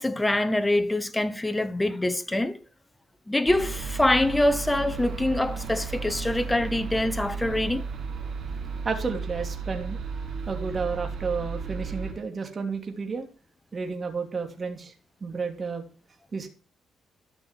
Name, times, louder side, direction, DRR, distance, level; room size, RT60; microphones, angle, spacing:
voice 1, 0.0-2.6 3.3-7.8, left 1 dB, 10° left, 1.0 m, -25 dB
sound 1, 3.5-12.1, right 5 dB, 55° right, 5.0 m, -34 dB
voice 2, 8.8-10.0 10.5-13.3 13.7-14.9 15.2-15.8 16.3-16.5, right 4 dB, 35° right, 2.9 m, -31 dB
13.0 x 6.1 x 7.6 m
cardioid pair, 90°, 0 cm